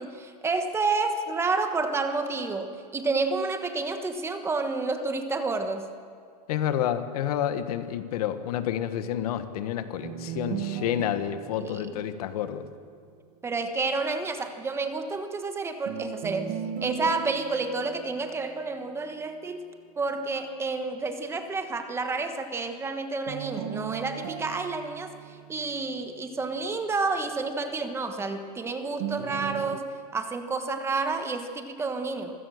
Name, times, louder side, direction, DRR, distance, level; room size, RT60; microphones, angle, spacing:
voice 1, 0.0-5.9 11.6-12.0 13.4-16.5 16.8-19.6 20.0-25.1 25.5-29.8 30.1-32.3, right 3 dB, 10° right, 7 dB, 1.3 m, -30 dB
voice 2, 6.5-12.6, left 10 dB, 65° left, 10 dB, 1.4 m, -29 dB
sound 1, 10.0-13.1 15.9-19.1 23.3-26.3 29.0-29.8, right 9 dB, 50° right, 1.5 m, -38 dB
26.0 x 16.5 x 6.6 m, 2.1 s
supercardioid pair, 150°, 21 cm